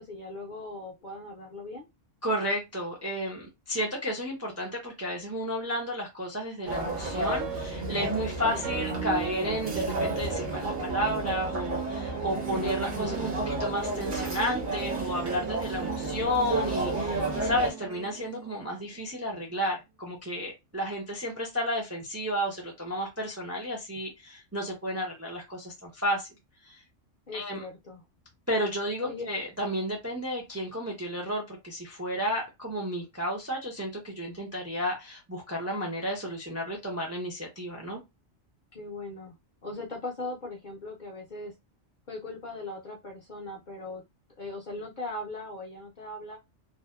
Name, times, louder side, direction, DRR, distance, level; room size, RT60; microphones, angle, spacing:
voice 1, 0.0-1.9 27.3-28.0 29.0-29.2 38.7-39.3 39.6-41.5 42.1-44.0 44.4-46.4, left 2 dB, 55° left, -1 dB, 0.6 m, -39 dB
voice 2, 2.2-26.3 26.6-26.8 27.3-27.6 28.5-38.0, equal, 20° right, -1 dB, 0.4 m, -32 dB
sound 1, 6.7-17.7, right 2 dB, 50° right, 0.8 m, -32 dB
sound 2, 6.9-19.2, right 8 dB, 75° right, 0.9 m, -38 dB
2.6 x 2.1 x 2.2 m, 0.22 s
omnidirectional pair, 1.3 m